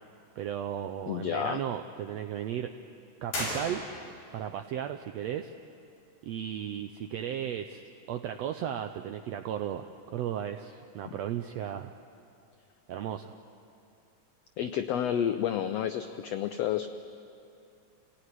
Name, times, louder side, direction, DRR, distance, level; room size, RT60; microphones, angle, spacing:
voice 1, 0.4-2.7 3.2-3.8 4.3-5.5 6.2-11.9 12.9-13.3, right 10 dB, 80° right, 7 dB, 1.5 m, -35 dB
voice 2, 1.1-1.6 14.6-16.9, left 9 dB, 90° left, 9 dB, 1.4 m, -30 dB
sound 1, 3.3-4.3, left 1 dB, 55° left, 7.2 m, -35 dB
27.5 x 17.5 x 9.8 m, 2.6 s
omnidirectional pair, 3.8 m